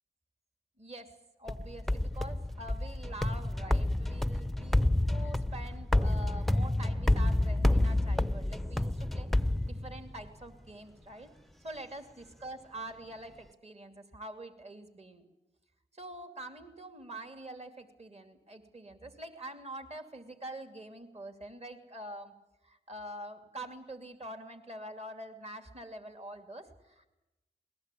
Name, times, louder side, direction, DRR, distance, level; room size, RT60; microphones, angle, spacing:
voice 1, 0.8-9.3 9.6-11.3 11.6-15.2 15.9-22.3 22.6-27.1, right 1 dB, 35° right, 6 dB, 2.7 m, -45 dB
sound 1, 1.5-10.3, left 1 dB, ahead, 0.7 m, -29 dB
21.0 x 19.5 x 8.5 m, 0.97 s
cardioid pair, 45°, 19 cm